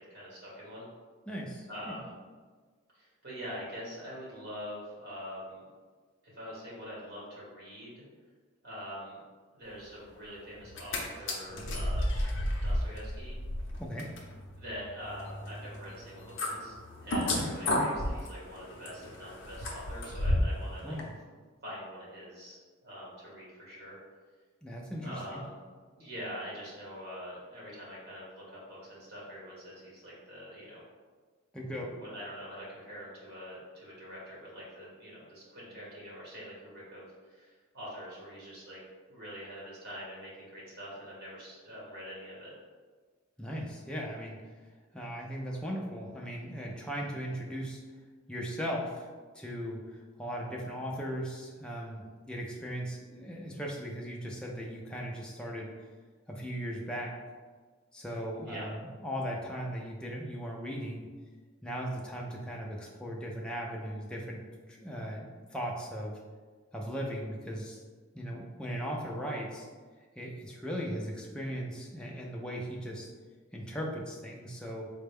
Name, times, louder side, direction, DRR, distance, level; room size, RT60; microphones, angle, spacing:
voice 1, 0.1-0.9 1.7-2.1 2.9-5.7 6.3-8.0 8.6-9.2 9.5-12.1 12.3-13.4 14.6-21.0 21.6-24.0 25.0-25.6 26.0-30.8 31.6-38.8 39.1-42.5 58.4-58.7, equal, 50° right, -6 dB, 1.5 m, -44 dB
voice 2, 1.3-2.0 13.8-14.1 20.8-21.1 24.6-25.4 31.5-32.0 43.4-44.4 44.9-47.8 48.3-49.1 49.3-55.7 56.3-57.2 57.9-61.1 61.6-64.4 64.7-66.2 66.7-67.8 68.1-69.7 70.2-73.1 73.5-74.9, equal, 5° left, -2 dB, 0.4 m, -38 dB
sound 1, 10.6-11.0 11.3-20.6 21.0-21.1, left 1 dB, 60° left, 0.6 m, -33 dB
4.0 x 2.2 x 3.4 m, 1.5 s
head